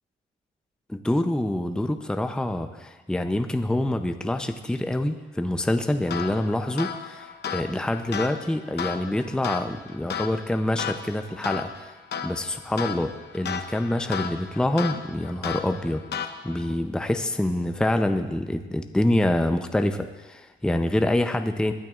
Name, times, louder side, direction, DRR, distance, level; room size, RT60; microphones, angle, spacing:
voice 1, 0.9-11.9 12.2-16.0 16.4-21.7, left 1 dB, 5° left, 7 dB, 0.6 m, -26 dB
sound 1, 6.1-16.7, left 7 dB, 55° left, 0.9 m, -35 dB
21.0 x 9.2 x 2.5 m, 1.3 s
cardioid pair, 90°, 20 cm